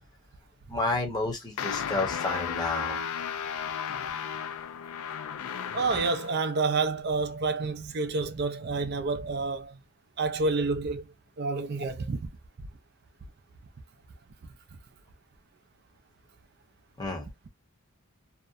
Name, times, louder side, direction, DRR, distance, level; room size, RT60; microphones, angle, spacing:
voice 1, 0.7-3.0 17.0-17.3, left 2 dB, 20° left, 0.8 m, -30 dB
sound 1, 1.6-6.4, left 7 dB, 70° left, 0.4 m, -34 dB
voice 2, 5.7-9.8 10.2-11.1 11.4-12.3, right 3 dB, 45° right, 0.4 m, -29 dB
2.7 x 2.1 x 2.4 m
head